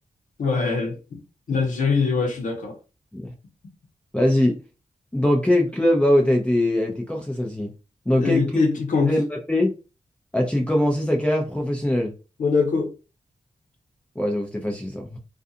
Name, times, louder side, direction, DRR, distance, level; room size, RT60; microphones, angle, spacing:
voice 1, 0.4-1.2 1.5-2.7 8.1-9.1 12.4-12.9, left 4 dB, 85° left, 0.8 m, -23 dB
voice 2, 4.1-4.6 5.1-7.7 8.1-8.6 9.1-9.7 10.3-12.1 14.2-15.2, left 1 dB, 10° left, 0.6 m, -22 dB
2.4 x 2.4 x 2.7 m
cardioid pair, 70°, 13 cm